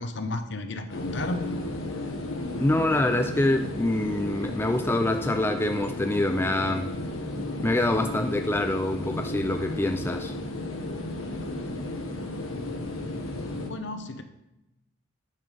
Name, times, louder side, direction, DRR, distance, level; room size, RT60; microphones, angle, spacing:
voice 1, 0.0-1.6 13.6-14.2, left 2 dB, 60° left, 7 dB, 0.9 m, -33 dB
sound 1, 0.9-13.7, left 1 dB, 85° left, 1.4 m, -34 dB
voice 2, 2.6-6.9 7.6-10.3, left 1 dB, 10° left, 6 dB, 0.3 m, -25 dB
9.3 x 5.8 x 5.2 m, 0.95 s
head